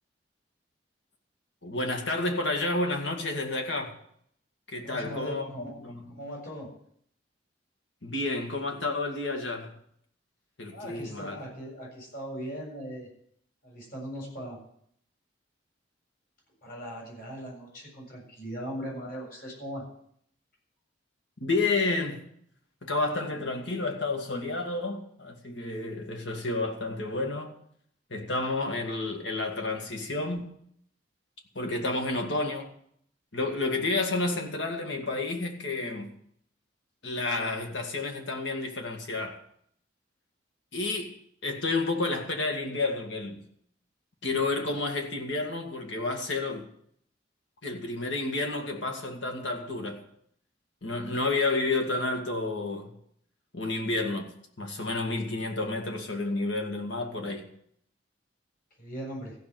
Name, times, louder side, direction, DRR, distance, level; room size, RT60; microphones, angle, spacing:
voice 1, 1.6-4.0 4.7-6.1 8.0-9.7 10.6-11.4 21.4-22.3 22.8-27.6 28.1-30.5 31.6-32.7 33.3-36.1 37.0-39.4 40.7-41.2 41.4-43.4 44.2-46.7 47.6-50.1 50.8-52.9 53.5-54.3 54.6-57.5, left 2 dB, 75° left, 2.1 m, -30 dB
voice 2, 4.8-5.7 6.1-6.7 10.7-13.1 13.6-14.6 16.6-19.8 58.8-59.4, equal, 55° left, 7.7 m, -39 dB
15.0 x 6.0 x 9.3 m
head